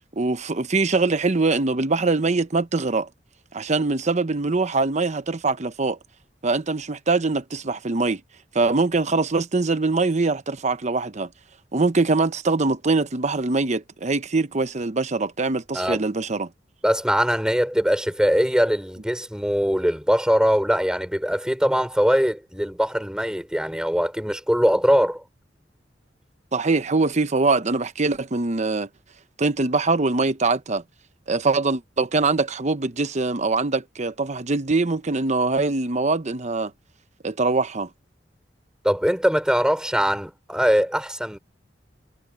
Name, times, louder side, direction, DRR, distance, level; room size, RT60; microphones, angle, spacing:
voice 1, 0.1-3.1 3.5-6.0 6.4-8.2 8.5-11.3 11.7-16.5 26.5-28.9 29.4-30.8 31.3-36.7 37.2-37.9, right 3 dB, 40° right, 0.9 m, -23 dB
voice 2, 16.8-25.2 38.8-41.4, equal, 5° right, 3.6 m, -21 dB
head